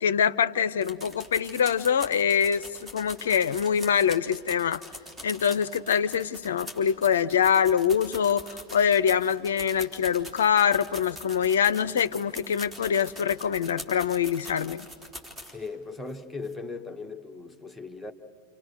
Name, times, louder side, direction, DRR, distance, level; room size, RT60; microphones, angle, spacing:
voice 1, 0.0-4.8 5.2-14.9, left 8 dB, 65° left, 0.6 m, -24 dB
sound 1, 0.8-15.7 16.1-16.2 16.4-16.5, equal, 15° right, 4.0 m, -43 dB
voice 2, 15.5-18.1, left 3 dB, 5° left, 1.5 m, -38 dB
29.5 x 28.5 x 6.7 m
figure-of-eight pair, 90°, 0 cm